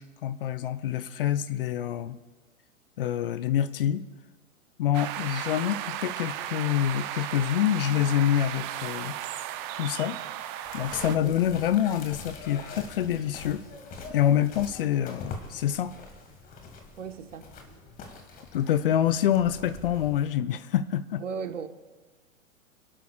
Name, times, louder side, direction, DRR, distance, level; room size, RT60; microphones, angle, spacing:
voice 1, 0.0-2.2 3.0-4.1 4.8-9.2 9.8-10.2 10.7-13.6 14.1-15.9 18.5-21.2, left 10 dB, 45° left, 14 dB, 0.6 m, -26 dB
sound 1, 4.9-11.2, right 12 dB, 20° right, 0.5 m, -35 dB
sound 2, 10.6-20.3, left 3 dB, 20° left, 1.8 m, -44 dB
voice 2, 11.0-11.4 17.0-17.9 21.2-21.7, right 6 dB, 65° right, 7 dB, 1.5 m, -37 dB
28.0 x 11.5 x 2.5 m, 1.3 s
figure-of-eight pair, 115°, 41 cm